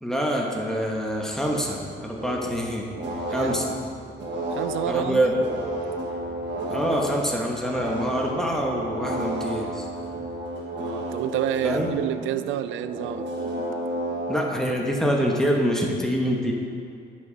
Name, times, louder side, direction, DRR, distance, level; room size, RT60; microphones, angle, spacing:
voice 1, 0.0-2.9 3.3-3.8 4.9-5.3 6.7-9.9 11.6-11.9 14.3-16.5, equal, ahead, -1 dB, 1.3 m, -25 dB
sound 1, 0.8-10.2, right 1 dB, 45° right, 2.3 m, -49 dB
sound 2, 2.2-7.1 7.5-15.1, right 1 dB, 65° right, 1.5 m, -32 dB
voice 2, 3.2-3.6 4.5-5.2 10.7-13.3, right 12 dB, 80° right, 13 dB, 0.4 m, -29 dB
10.5 x 6.1 x 4.1 m, 2.4 s
cardioid pair, 90°, 20 cm